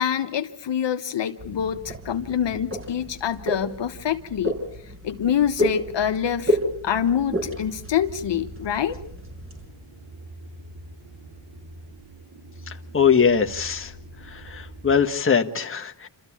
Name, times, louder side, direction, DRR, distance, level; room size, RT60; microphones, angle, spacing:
voice 1, 0.0-4.5 5.0-6.6 6.8-9.0, left 9 dB, 60° left, 1.3 m, -25 dB
sound 1, 1.4-9.7, left 1 dB, 25° right, 5.5 m, -31 dB
sound 2, 7.3-15.1, right 1 dB, 60° right, 4.3 m, -43 dB
voice 2, 12.9-13.9 14.5-16.1, left 6 dB, 25° left, 1.5 m, -21 dB
27.5 x 14.0 x 8.6 m
cardioid pair, 80°, 48 cm